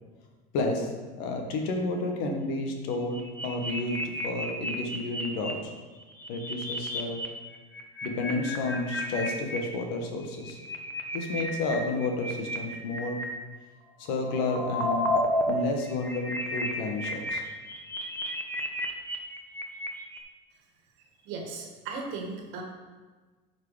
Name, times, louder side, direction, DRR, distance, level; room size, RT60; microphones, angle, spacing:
voice 1, 0.5-5.7 6.3-7.2 8.0-10.6 11.1-13.2 14.0-15.1 15.4-17.4, left 2 dB, 75° left, 3 dB, 1.6 m, -31 dB
sound 1, 2.9-5.5 6.0-7.3 7.5-9.6 10.2-13.2 14.0-15.5 15.8-20.2, left 1 dB, 10° left, 1.0 m, -32 dB
voice 2, 21.2-22.6, right 4 dB, 70° right, 2 dB, 1.6 m, -37 dB
8.2 x 5.0 x 5.1 m, 1.3 s
cardioid pair, 130°, 19 cm